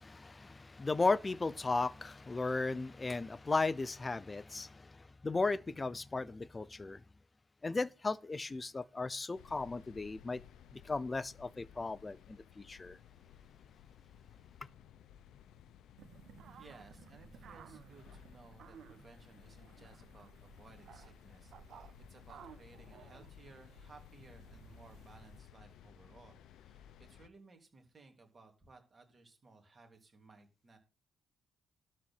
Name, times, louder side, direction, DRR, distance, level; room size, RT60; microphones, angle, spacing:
voice 1, 0.0-7.0 7.6-10.4 10.7-13.0, left 3 dB, 20° left, 0.6 m, -36 dB
sound 1, 9.3-27.3, left 9 dB, 80° left, 0.8 m, -58 dB
sound 2, 16.0-25.4, right 7 dB, 65° right, 1.2 m, -57 dB
voice 2, 16.6-21.8 22.1-30.8, right 3 dB, 30° right, 3.4 m, -60 dB
12.5 x 4.3 x 8.1 m
cardioid pair, 125°, 0 cm